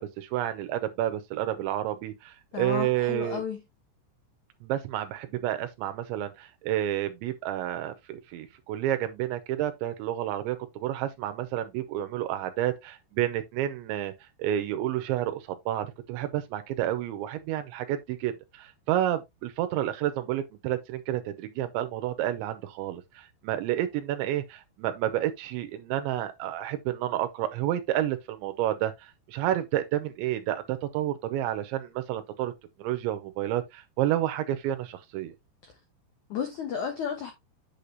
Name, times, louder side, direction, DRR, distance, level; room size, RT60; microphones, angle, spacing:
voice 1, 0.0-3.4 4.6-14.1 14.4-32.5 32.8-35.3, right 12 dB, 90° right, 3.1 m, -30 dB
voice 2, 2.5-3.6 35.6-35.7 36.3-37.3, left 7 dB, 75° left, 1.7 m, -32 dB
8.5 x 6.8 x 2.8 m
omnidirectional pair, 5.3 m